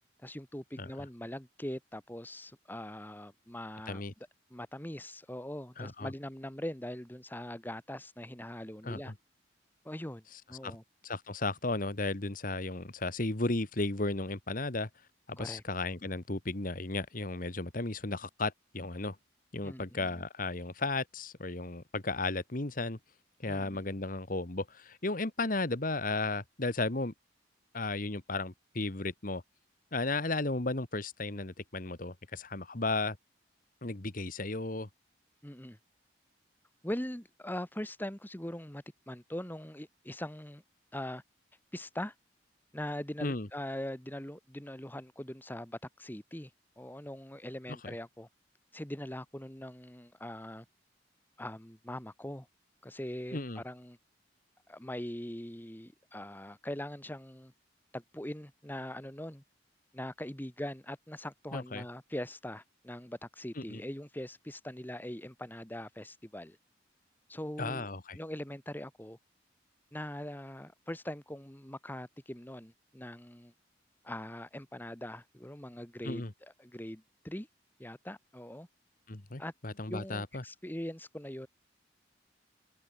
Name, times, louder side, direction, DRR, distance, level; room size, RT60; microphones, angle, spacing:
voice 1, 0.2-4.0 4.5-9.1 9.9-10.2 10.5-10.8 15.4-15.6 19.6-20.2 23.5-23.8 35.4-35.8 36.8-40.6 40.9-41.2 41.7-42.1 42.7-46.5 46.8-48.3 48.7-50.7 51.4-52.5 52.8-54.0 54.7-57.5 57.9-59.4 59.9-66.6 67.3-67.9 68.1-69.2 69.9-73.5 74.0-77.5 77.8-78.7 79.4-79.5 79.9-81.5, left 1 dB, 10° left, 1.7 m, -41 dB
voice 2, 5.8-6.1 8.8-9.1 10.6-10.8 11.0-14.9 15.3-19.2 19.5-23.0 23.4-27.1 27.7-29.4 29.9-33.2 33.8-34.9 43.2-43.5 47.8-47.9 53.3-53.6 61.5-61.8 63.6-63.8 67.6-68.2 76.0-76.3 79.1-80.4, left 2 dB, 45° left, 1.6 m, -34 dB
head